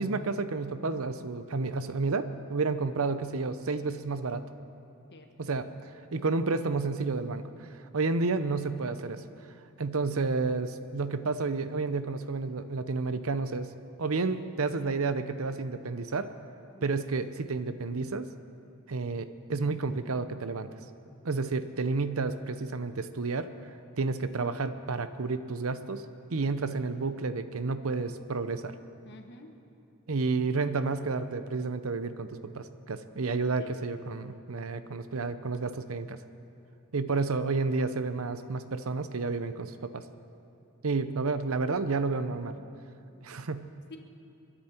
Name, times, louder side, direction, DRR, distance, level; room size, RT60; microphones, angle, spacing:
voice 1, 0.0-4.4 5.4-5.7 6.1-7.4 7.9-9.2 9.8-13.7 14.0-16.3 16.8-18.3 18.9-20.7 21.2-23.5 24.0-26.0 26.3-28.8 30.1-36.2 36.9-40.0 40.8-42.6 43.2-43.7, right 4 dB, 70° right, 11 dB, 0.7 m, -30 dB
voice 2, 5.1-5.5 16.7-16.9 29.0-29.5 33.6-33.7 36.9-37.3 43.1-43.5 43.9-44.0, left 2 dB, 55° left, 4 dB, 1.5 m, -51 dB
29.5 x 10.0 x 4.4 m, 2.8 s
head